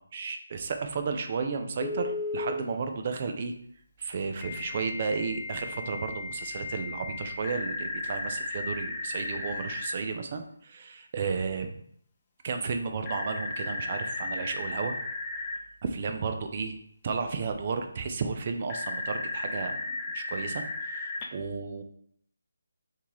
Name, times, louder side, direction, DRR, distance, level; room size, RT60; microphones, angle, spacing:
voice 1, 0.1-3.5 4.0-11.7 12.4-15.0 15.8-16.8 17.0-21.8, right 5 dB, 40° right, 5 dB, 0.5 m, -33 dB
Telephone, 1.8-2.6 4.4-9.9 13.0-15.6 18.7-21.2, left 2 dB, 25° left, 0.5 m, -35 dB
2.9 x 2.8 x 3.7 m, 0.67 s
figure-of-eight pair, 160°, 0 cm